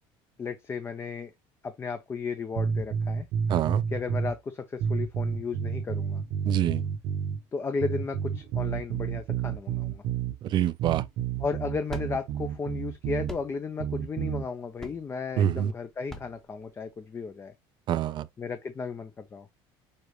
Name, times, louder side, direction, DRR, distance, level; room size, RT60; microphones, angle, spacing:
voice 1, 0.4-1.3 1.6-3.3 3.9-6.2 7.5-10.0 11.4-17.5 18.4-19.5, left 5 dB, 25° left, 0.6 m, -34 dB
sound 1, 2.5-4.4 4.8-7.4 7.8-10.4 10.8-13.4 13.8-14.5, right 7 dB, 60° right, 1.0 m, -30 dB
voice 2, 3.5-3.8 6.5-6.8 10.4-11.0 15.4-15.7 17.9-18.3, right 10 dB, 45° right, 0.5 m, -25 dB
sound 2, 11.1-17.3, equal, 5° left, 0.9 m, -45 dB
6.6 x 2.5 x 3.1 m
cardioid pair, 125°, 11 cm